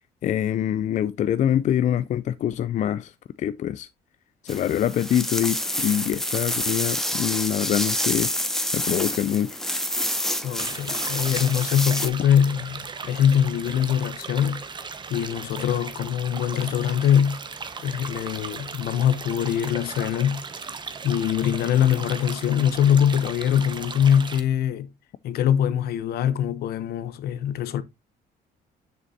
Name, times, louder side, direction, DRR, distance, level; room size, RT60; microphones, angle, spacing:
voice 1, 0.2-3.9 4.4-8.3 8.7-9.6, left 10 dB, 45° left, 0.4 m, -25 dB
sound 1, 4.5-12.1, equal, ahead, 0.9 m, -28 dB
voice 2, 10.4-14.7 15.1-17.4 17.8-20.5 21.0-24.9 25.2-27.8, left 9 dB, 70° left, 0.8 m, -23 dB
sound 2, 10.6-24.4, right 5 dB, 25° right, 0.9 m, -37 dB
6.7 x 6.5 x 2.7 m
cardioid pair, 110°, 17 cm